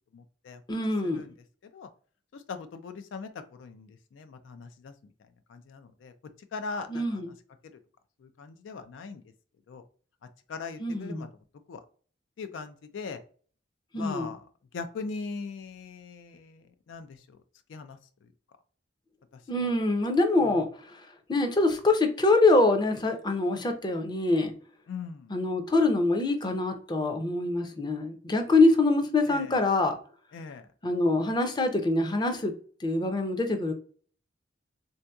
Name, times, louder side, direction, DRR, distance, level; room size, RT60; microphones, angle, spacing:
voice 1, 0.1-0.6 1.0-1.3 1.7-1.9 2.3-4.9 5.5-6.1 6.5-7.2 8.2-9.2 9.7-9.8 10.5-11.3 11.7-11.8 12.4-13.2 13.9-14.4 14.7-17.2 17.7-18.0 24.9-25.3 29.3-29.6 30.3-30.7, left 4 dB, 75° left, 0.4 m, -40 dB
voice 2, 0.7-1.2 6.9-7.3 10.8-11.3 13.9-14.3 19.5-21.0 21.3-24.5 25.3-29.9 30.8-32.5 32.8-33.7, left 2 dB, 25° left, 0.5 m, -25 dB
3.5 x 2.7 x 2.2 m
head